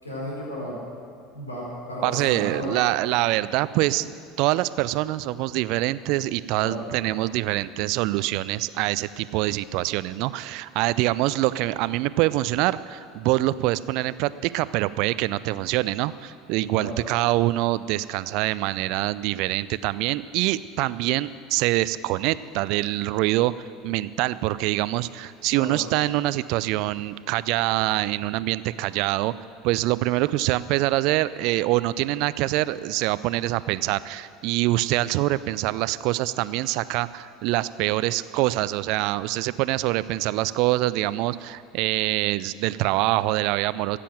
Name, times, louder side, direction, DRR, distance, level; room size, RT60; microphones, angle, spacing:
voice 1, 0.0-0.8 1.3-2.7 6.6-6.9 16.7-17.0 25.5-25.8, equal, 85° left, -5 dB, 4.3 m, -33 dB
voice 2, 2.0-4.1 4.4-23.5 23.8-29.3 29.6-44.0, right 17 dB, 55° right, 17 dB, 0.4 m, -25 dB
15.5 x 8.4 x 7.6 m, 2.2 s
figure-of-eight pair, 70°, 0 cm